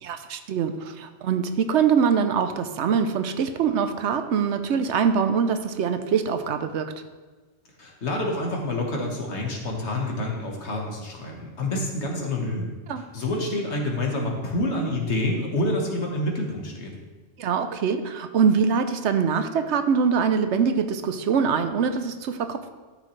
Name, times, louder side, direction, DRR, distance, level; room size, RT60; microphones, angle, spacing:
voice 1, 0.0-6.9 12.9-13.0 17.4-22.7, right 6 dB, 75° right, 9 dB, 1.0 m, -23 dB
voice 2, 7.8-12.7 13.0-16.9, left 1 dB, 70° left, 0 dB, 1.8 m, -28 dB
12.5 x 6.7 x 3.2 m, 1.4 s
omnidirectional pair, 1.2 m